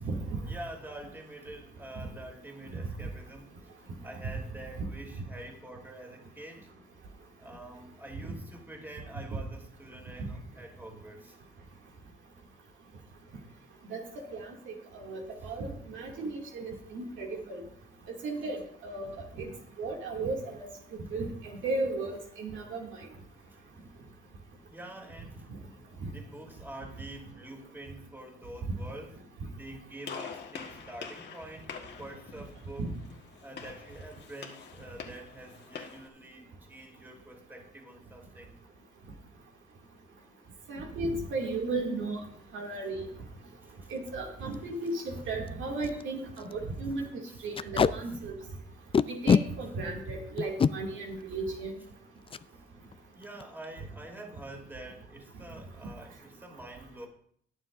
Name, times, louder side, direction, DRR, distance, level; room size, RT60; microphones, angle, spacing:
voice 1, 0.2-3.7 4.0-6.7 7.4-11.4 15.4-16.4 17.0-17.5 19.0-19.1 19.4-19.7 21.1-21.2 23.3-23.7 24.7-25.7 26.1-29.2 29.6-32.9 33.4-38.5 43.6-43.9 47.3-47.4 52.6-52.8 53.2-57.1, right 1 dB, 10° right, 1 dB, 2.8 m, -47 dB
voice 2, 14.3-17.6 18.2-19.5 19.8-20.7 21.1-22.9 32.8-32.9 40.7-42.2 42.5-43.1 43.9-47.1 47.4-48.4 49.1-51.7, right 3 dB, 75° right, 0 dB, 2.4 m, -35 dB
Gunshot gunfire, 30.0-36.1, left 6 dB, 60° left, 1.5 m, -45 dB
Packing tape duct tape, 43.9-44.1 44.5-44.6 44.9-45.0 45.5-45.6 45.8-46.0 46.4-46.5 47.5-47.9 48.9-49.4 50.4-50.7 52.3-52.4 52.8-53.0 53.2-53.6, left 6 dB, 30° left, 0.4 m, -24 dB
21.0 x 7.2 x 2.6 m, 0.62 s
cardioid pair, 90°, 20 cm